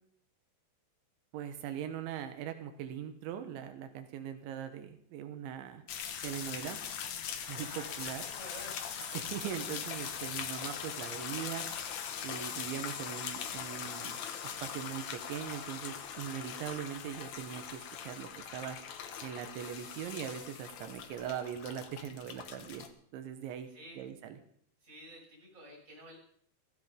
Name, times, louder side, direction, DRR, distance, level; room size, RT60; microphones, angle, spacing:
voice 1, 1.3-5.8 6.2-6.8 7.5-8.2 9.1-11.7 12.2-14.2 14.4-18.8 19.2-22.9 23.1-23.7 24.0-24.4, right 9 dB, 90° right, 8 dB, 3.6 m, -41 dB
sound 1, 5.9-22.9, left 8 dB, 80° left, 1.6 m, -41 dB
voice 2, 7.6-8.8 23.7-24.1 24.8-26.2, equal, 15° right, -3 dB, 6.4 m, -50 dB
16.0 x 15.0 x 5.2 m, 0.64 s
omnidirectional pair, 5.2 m